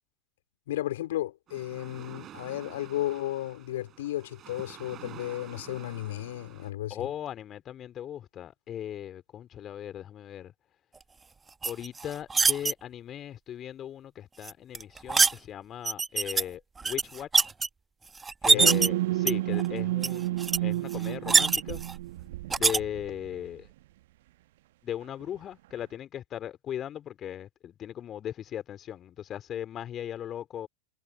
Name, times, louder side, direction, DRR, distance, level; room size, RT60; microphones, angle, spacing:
voice 1, 0.7-7.1 18.5-18.8, left 14 dB, 55° left, 2.9 m, -34 dB
sound 1, 1.5-6.7, right 11 dB, 30° right, 7.9 m, -49 dB
voice 2, 6.9-10.5 11.6-17.5 18.4-21.8 22.5-23.7 24.8-30.7, left 10 dB, 30° left, 3.2 m, -38 dB
sound 2, 11.6-12.7 14.4-15.3 15.8-16.4 16.8-17.7 18.2-18.9 19.3-19.7 20.0-20.1 20.4-20.6 20.9-21.9 22.5-22.8, right 4 dB, 15° right, 1.2 m, -23 dB
sound 3, 18.6-23.4, right 17 dB, 55° right, 1.1 m, -30 dB
figure-of-eight pair, 90°, 0 cm